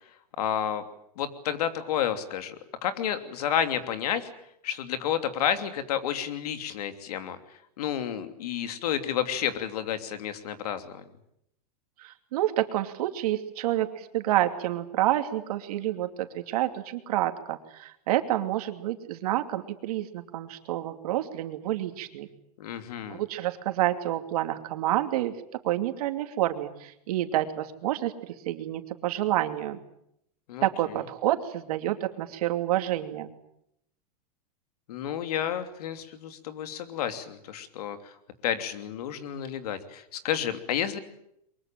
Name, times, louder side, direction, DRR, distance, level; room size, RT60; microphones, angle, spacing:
voice 1, 0.4-0.8 1.2-2.6 2.8-4.3 4.6-7.4 7.8-11.0 22.6-23.2 30.5-31.0 34.9-38.1 38.4-41.0, left 9 dB, 75° left, 9 dB, 3.0 m, -30 dB
voice 2, 12.0-22.3 23.1-25.3 25.6-29.8 30.6-33.3, right 14 dB, 70° right, 7 dB, 2.8 m, -28 dB
23.0 x 22.0 x 9.0 m, 0.76 s
supercardioid pair, 130°, 20 cm